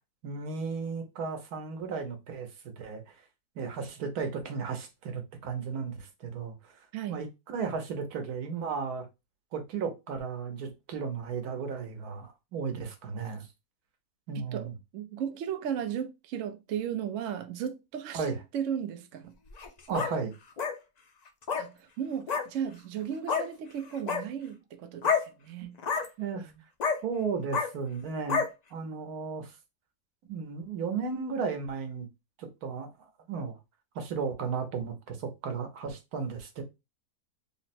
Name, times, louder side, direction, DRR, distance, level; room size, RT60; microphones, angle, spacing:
voice 1, 0.2-3.0 3.6-6.8 7.1-9.1 9.5-13.5 14.3-14.7 18.1-18.4 19.9-20.3 26.2-26.5 27.0-28.5 28.7-29.5 30.2-32.1 32.4-32.9 33.3-33.6 33.9-36.6, right 5 dB, 85° right, 1.3 m, -34 dB
voice 2, 6.9-7.2 14.3-19.4 21.6-25.8, right 8 dB, 65° right, 0.9 m, -35 dB
sound 1, 19.5-20.1 20.6-20.7 21.4-21.7 22.3-22.4 23.3-23.4 23.9-24.2 25.0-25.2 25.8-26.1 26.8-27.0 27.5-27.7 28.3-28.5, left 6 dB, 80° left, 0.3 m, -28 dB
3.7 x 2.1 x 4.1 m
omnidirectional pair, 1.5 m